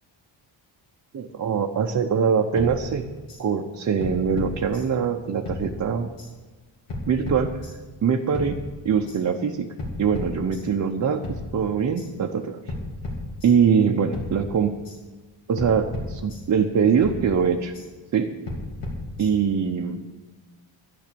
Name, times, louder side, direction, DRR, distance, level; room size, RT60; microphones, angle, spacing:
voice 1, 1.1-3.1 3.4-6.1 7.1-7.6 8.0-9.7 10.0-12.6 13.4-14.8 15.5-17.7 18.1-18.3 19.2-20.0, right 6 dB, 35° right, 1 dB, 0.7 m, -23 dB
sound 1, 2.6-3.4 4.0-5.2 5.4-6.3 6.9-8.0 8.3-9.2 9.8-10.9 11.2-12.1 12.7-13.8 14.1-15.0 15.6-16.7 17.0-17.9 18.5-19.6, left 2 dB, 85° left, 3.3 m, -35 dB
12.0 x 10.5 x 6.9 m, 1.3 s
wide cardioid pair, 175°, 49 cm